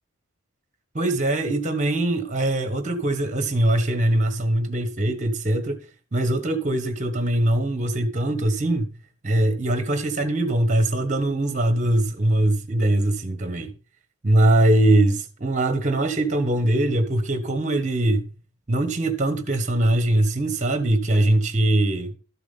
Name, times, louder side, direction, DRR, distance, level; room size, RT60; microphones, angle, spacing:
voice 1, 0.9-5.8 6.1-8.9 9.2-13.7 14.2-18.3 18.7-22.1, right 1 dB, 35° right, 1.2 m, -22 dB
13.0 x 7.2 x 4.0 m
head